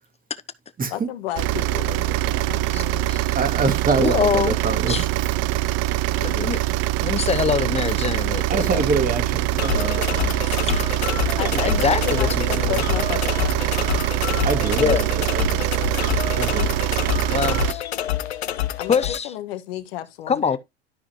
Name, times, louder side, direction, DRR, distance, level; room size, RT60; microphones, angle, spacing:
voice 1, 0.9-3.1 8.7-8.9 10.1-10.6 11.4-14.0 14.3-14.5 16.6-16.8 18.8-19.0 19.2-20.6, left 13 dB, 70° left, 1.6 m, -33 dB
sound 1, 1.4-17.7, right 16 dB, 55° right, 0.5 m, -23 dB
voice 2, 2.7-3.4 4.0-4.6 4.9-5.1 6.1-6.6 7.0-8.9 10.5-11.0 11.4-12.7 14.8-15.0 17.0-17.8 18.9-19.3 20.3-20.6, left 6 dB, 20° left, 0.9 m, -25 dB
voice 3, 3.3-5.0 8.5-10.0 14.4-15.1 15.3-15.7 16.3-16.7, right 4 dB, 25° right, 2.2 m, -25 dB
sound 2, 9.6-19.2, left 12 dB, 90° left, 0.8 m, -27 dB
12.5 x 5.0 x 3.0 m
hypercardioid pair, 80°, 31 cm